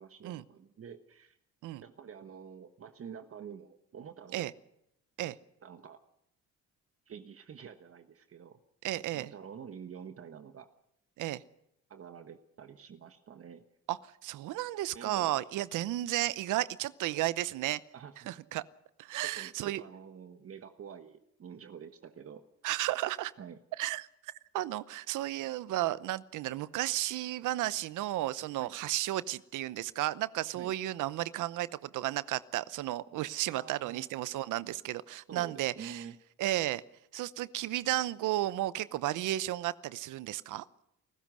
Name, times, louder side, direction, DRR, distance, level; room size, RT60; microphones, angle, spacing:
voice 1, 0.0-1.4 1.8-4.5 5.6-6.0 7.1-8.6 9.1-10.7 11.9-13.6 14.9-15.4 17.9-18.3 19.2-22.4 23.4-23.6 28.6-28.7 30.5-30.7 33.5-34.1 35.3-36.2, right 7 dB, 50° right, 8 dB, 1.3 m, -48 dB
voice 2, 8.8-9.3 11.2-11.4 13.9-17.8 18.3-18.6 19.0-19.8 22.6-23.3 23.8-36.0 36.4-36.8 37.1-40.6, right 15 dB, 85° right, 17 dB, 0.8 m, -33 dB
28.5 x 15.0 x 6.3 m, 0.79 s
cardioid pair, 90°, 30 cm